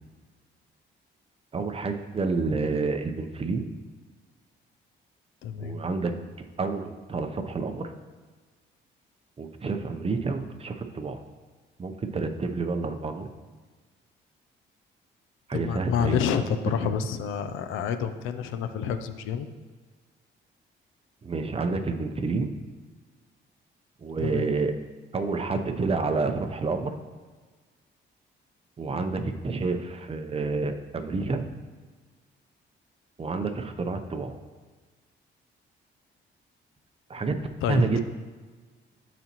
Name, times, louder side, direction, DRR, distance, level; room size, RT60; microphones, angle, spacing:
voice 1, 1.5-3.7 5.6-6.1 6.4-7.9 9.4-11.2 11.8-13.3 15.5-16.2 21.2-22.5 24.0-24.7 25.1-26.9 28.8-31.4 33.2-34.3 37.1-37.4 37.7-38.0, right 4 dB, 30° right, 6 dB, 0.7 m, -29 dB
voice 2, 5.4-5.8 15.5-19.5 24.2-24.5 37.6-38.0, left 8 dB, 90° left, 10 dB, 0.5 m, -28 dB
12.5 x 4.1 x 3.0 m, 1.4 s
cardioid pair, 90°, 20 cm